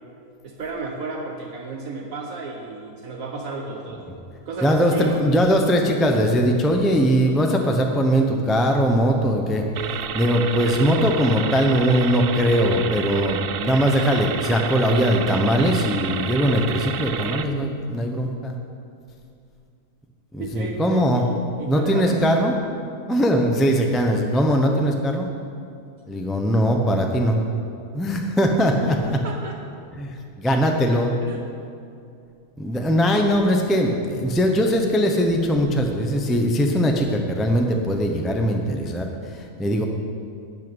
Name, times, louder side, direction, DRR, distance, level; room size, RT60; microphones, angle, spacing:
voice 1, 0.4-4.0 4.5-5.2 20.4-22.5 29.1-29.8 31.2-31.4, right 3 dB, 65° right, 1 dB, 1.3 m, -33 dB
voice 2, 4.6-18.5 20.3-21.2 21.7-22.8 23.1-25.3 26.1-27.4 27.9-29.2 30.0-31.1 32.6-39.1 39.3-39.8, equal, ahead, 2 dB, 0.5 m, -20 dB
sound 1, 9.8-17.4, right 9 dB, 85° right, 1.2 m, -30 dB
12.5 x 5.6 x 9.1 m, 2.5 s
omnidirectional pair, 1.6 m